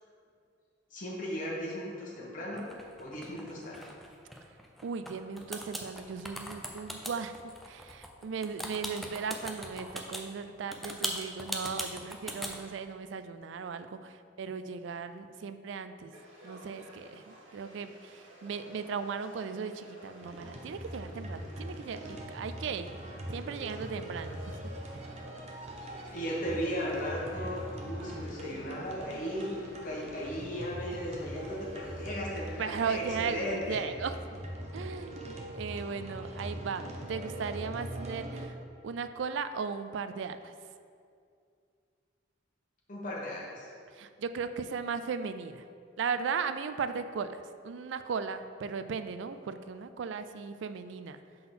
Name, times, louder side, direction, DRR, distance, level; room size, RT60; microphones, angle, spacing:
voice 1, 0.9-2.6 3.0-3.8 26.1-29.5 29.8-33.8 42.9-43.7, equal, 45° left, -4 dB, 1.3 m, -36 dB
sound 1, 2.6-5.1 5.4-10.2 10.7-12.6, equal, ahead, 0.4 m, -39 dB
voice 2, 4.8-7.4 7.6-16.1 16.4-22.9 23.3-24.6 24.9-25.2 32.6-34.4 34.7-38.5 38.8-40.5 43.9-45.6 46.0-51.2, right 5 dB, 70° right, 11 dB, 0.3 m, -37 dB
Conversation / Crowd, 16.1-32.7, equal, 90° right, 1.5 m, -53 dB
sound 2, 20.2-38.5, right 1 dB, 35° right, 0.7 m, -42 dB
5.6 x 3.9 x 5.9 m, 2.3 s
head